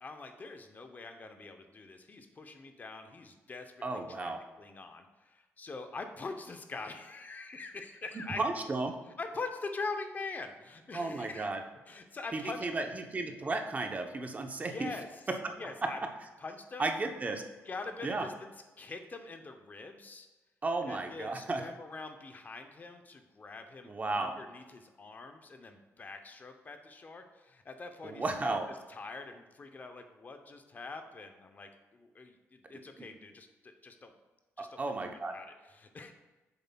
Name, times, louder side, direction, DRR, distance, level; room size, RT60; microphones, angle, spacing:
voice 1, 0.0-8.4 9.2-11.5 11.9-12.9 14.6-15.1 15.6-16.0 16.4-16.9 17.7-18.5 18.8-20.3 20.8-28.6 28.9-34.1 34.6-34.8 35.3-36.1, left 3 dB, 35° left, 6 dB, 0.6 m, -44 dB
voice 2, 3.8-4.4 8.4-8.9 10.9-11.6 12.3-14.9 15.3-15.5 15.8-15.9 16.8-17.4 18.0-18.3 20.6-21.6 23.8-24.3 28.0-28.6 33.0-33.1 34.6-35.3, right 3 dB, 30° right, 5 dB, 0.7 m, -34 dB
8.1 x 6.8 x 2.2 m, 1.2 s
cardioid pair, 105°, 5 cm